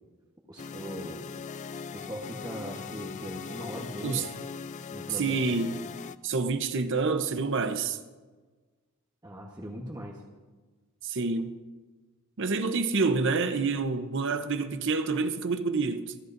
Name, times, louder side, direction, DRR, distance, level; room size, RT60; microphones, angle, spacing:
voice 1, 0.5-1.2 1.9-4.3 4.9-5.4 9.2-10.2, equal, 20° right, 1.2 m, -39 dB
sound 1, 0.6-6.2, left 5 dB, 35° left, 0.3 m, -40 dB
voice 2, 5.1-5.8 6.2-8.0 11.0-11.5 12.4-16.1, right 4 dB, 60° right, 0.8 m, -28 dB
27.0 x 11.5 x 2.6 m
head